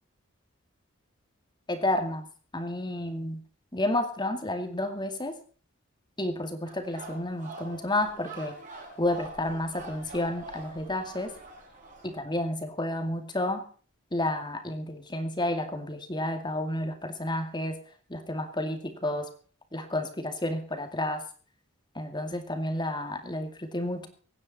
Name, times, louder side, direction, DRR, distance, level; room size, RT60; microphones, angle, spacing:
voice 1, 1.7-2.3 2.5-3.4 3.7-5.3 6.2-8.5 9.0-11.3 12.0-13.6 14.1-17.8 18.1-19.3 19.7-21.2 22.0-24.1, left 1 dB, 20° left, 6 dB, 2.3 m, -31 dB
sound 1, 6.6-12.2, right 3 dB, 35° right, 5.9 m, -45 dB
24.5 x 9.7 x 4.2 m, 0.41 s
head